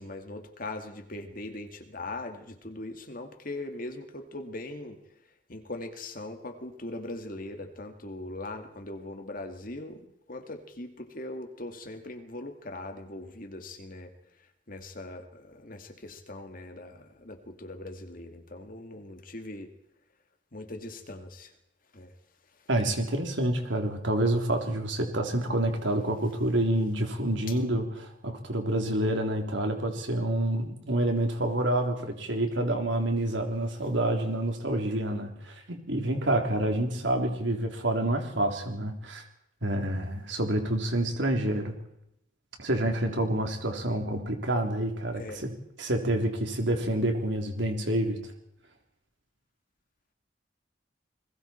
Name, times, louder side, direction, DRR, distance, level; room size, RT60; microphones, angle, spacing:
voice 1, 0.0-5.0 5.5-14.1 14.7-19.7 20.5-21.5 21.9-22.1 45.2-45.5, left 2 dB, 45° left, 6 dB, 2.1 m, -40 dB
voice 2, 22.7-39.2 39.6-41.7 42.6-45.5 45.8-48.2, right 1 dB, 70° right, 3 dB, 3.5 m, -28 dB
29.0 x 21.0 x 4.5 m, 0.77 s
head